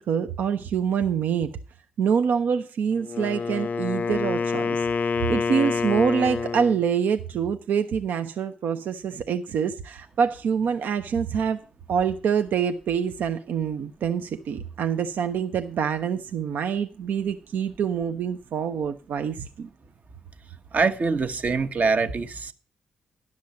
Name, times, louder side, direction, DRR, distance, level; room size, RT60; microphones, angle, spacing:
voice 1, 0.0-1.5 2.0-4.9 5.3-11.6 11.9-19.7, right 7 dB, 70° right, 0.5 m, -26 dB
Wind instrument woodwind instrument, 3.0-6.9, left 5 dB, 45° left, 0.4 m, -27 dB
voice 2, 20.7-22.5, right 4 dB, 50° right, 0.9 m, -24 dB
10.5 x 6.2 x 6.9 m
hypercardioid pair, 40°, 3 cm